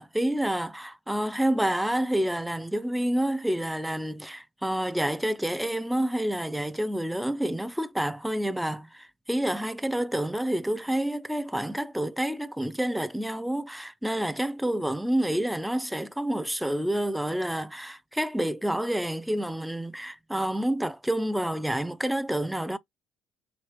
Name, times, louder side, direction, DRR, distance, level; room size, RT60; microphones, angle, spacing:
voice 1, 0.0-22.8, right 1 dB, 5° right, 0.4 m, -28 dB
3.2 x 3.0 x 2.9 m
supercardioid pair, 65°, 0 cm